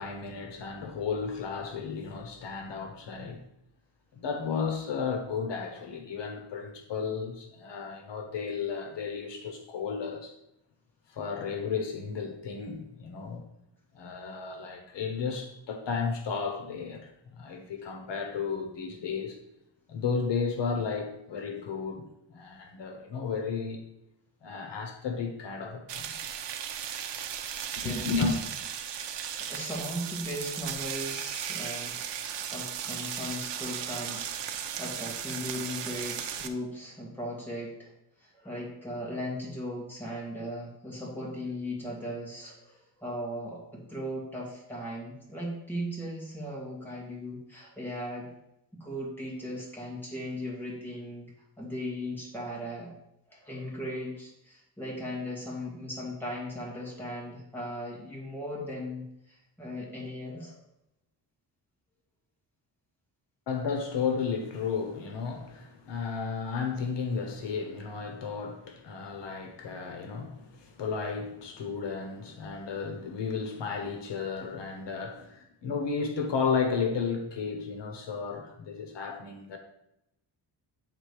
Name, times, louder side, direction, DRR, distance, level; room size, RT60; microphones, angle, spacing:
voice 1, 0.0-3.4 4.1-10.3 11.1-13.4 13.9-19.4 19.9-23.8 24.4-26.1 27.8-28.4 63.5-79.6, left 5 dB, 75° left, 1.1 m, -33 dB
sound 1, 25.9-36.5, right 9 dB, 75° right, 0.7 m, -36 dB
voice 2, 27.8-28.3 28.9-37.9 38.2-48.3 48.7-51.3 51.6-52.9 53.3-60.6, equal, 5° left, 1.8 m, -38 dB
8.8 x 3.8 x 4.9 m
wide cardioid pair, 180°, 43 cm